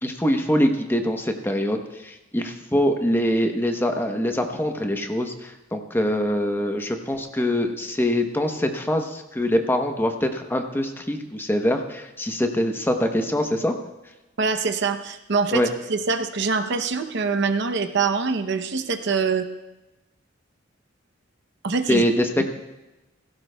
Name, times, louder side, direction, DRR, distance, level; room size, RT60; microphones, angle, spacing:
voice 1, 0.0-13.7 15.5-15.7 21.9-22.4, left 1 dB, 10° left, 4 dB, 0.9 m, -24 dB
voice 2, 14.4-15.6 15.9-19.5 21.6-22.0 22.4-22.5, right 4 dB, 60° right, 8 dB, 0.7 m, -24 dB
17.0 x 16.0 x 2.3 m, 1.0 s
head